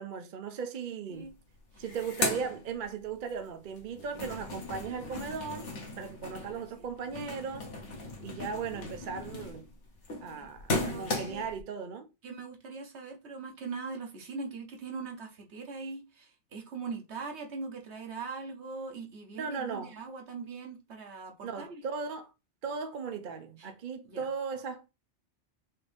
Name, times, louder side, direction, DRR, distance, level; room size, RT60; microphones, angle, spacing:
voice 1, 0.0-1.3 1.8-5.7 6.0-7.7 8.2-9.6 10.2-12.1 19.4-19.9 21.4-22.3 22.6-24.9, right 6 dB, 50° right, 0.7 m, -37 dB
sound 1, 1.2-1.3 1.6-3.3 3.7-11.6, left 2 dB, 90° left, 1.4 m, -37 dB
voice 2, 6.3-6.9 10.4-10.5 10.8-11.5 12.2-21.8 23.6-23.7 24.0-24.3, right 4 dB, 70° right, 1.3 m, -41 dB
5.5 x 2.7 x 3.4 m
omnidirectional pair, 1.2 m